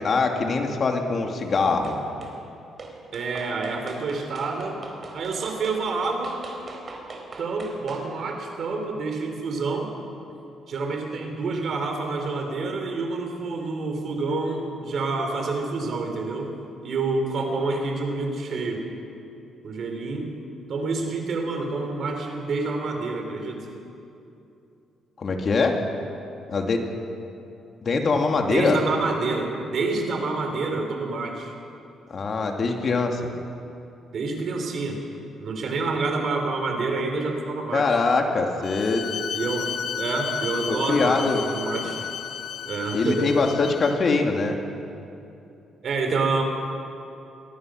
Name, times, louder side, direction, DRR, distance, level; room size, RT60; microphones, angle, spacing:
voice 1, 0.0-2.0 25.2-25.8 26.5-26.8 27.8-28.8 32.1-33.3 37.7-39.0 40.7-41.4 42.9-44.6, left 4 dB, 45° left, 3 dB, 2.5 m, -23 dB
sound 1, 1.8-2.4 2.8-8.1, right 3 dB, 40° right, 4.0 m, -41 dB
voice 2, 3.1-4.8 5.1-6.4 7.4-9.9 10.7-16.5 16.8-18.9 19.6-20.3 20.7-23.6 28.5-31.5 34.1-35.0 35.4-37.9 39.3-41.2 41.5-42.0 42.6-43.5 45.8-46.4, right 3 dB, 60° right, 4 dB, 3.9 m, -28 dB
Bowed string instrument, 38.6-44.1, left 8 dB, 70° left, 1.2 m, -33 dB
23.0 x 18.0 x 6.5 m, 2.7 s
cardioid pair, 90°, 0 cm